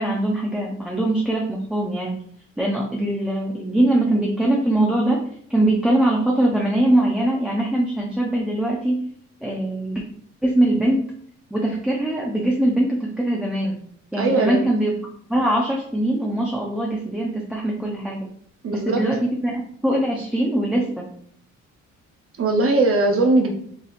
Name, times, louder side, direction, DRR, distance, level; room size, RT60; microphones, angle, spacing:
voice 1, 0.0-2.2 2.6-5.2 5.5-9.0 9.4-10.0 10.4-11.0 11.5-13.8 14.1-14.9 15.3-18.3 18.7-21.1, right 1 dB, 5° right, -2 dB, 0.7 m, -22 dB
voice 2, 14.2-14.7 18.6-19.0 22.4-23.5, right 2 dB, 50° right, 2 dB, 0.8 m, -19 dB
6.2 x 2.8 x 2.6 m, 0.62 s
cardioid pair, 90°, 30 cm